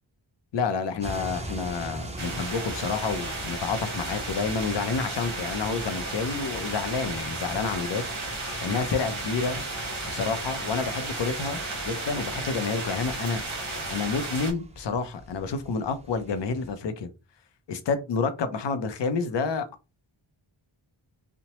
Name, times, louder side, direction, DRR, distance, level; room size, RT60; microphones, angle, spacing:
voice 1, 0.5-8.1 8.6-9.6 10.1-13.4 13.9-17.1 17.7-19.6, left 5 dB, 60° left, 0.6 m, -29 dB
sound 1, 1.0-16.7, right 1 dB, 15° right, 0.5 m, -43 dB
sound 2, 2.2-14.5, right 2 dB, 35° right, 1.0 m, -34 dB
2.9 x 2.1 x 2.8 m
wide cardioid pair, 130°, 48 cm